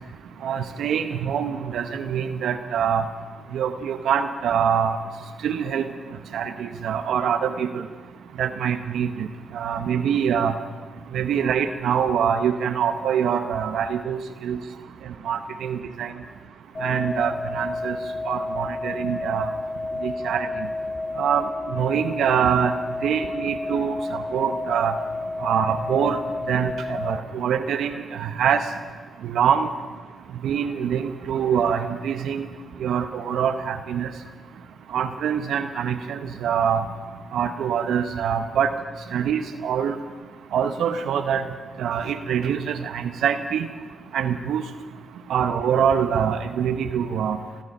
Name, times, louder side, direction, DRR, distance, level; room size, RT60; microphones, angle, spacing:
voice 1, 0.4-3.1 3.5-5.0 5.4-5.9 6.3-7.9 8.4-9.3 9.5-10.6 11.1-14.6 15.0-16.1 16.8-18.0 18.3-19.5 20.0-20.7 21.2-25.0 25.4-26.2 26.5-28.6 29.2-29.7 30.4-32.5 32.8-34.1 34.9-36.9 37.3-38.7 39.1-40.0 40.5-41.4 41.8-43.7 44.1-44.6 45.3-47.4, right 8 dB, 75° right, 8 dB, 0.8 m, -24 dB
sound 1, 16.7-27.2, left 2 dB, 45° left, 2.9 m, -31 dB
27.5 x 9.8 x 5.4 m, 1.4 s
hypercardioid pair, 45°, 0 cm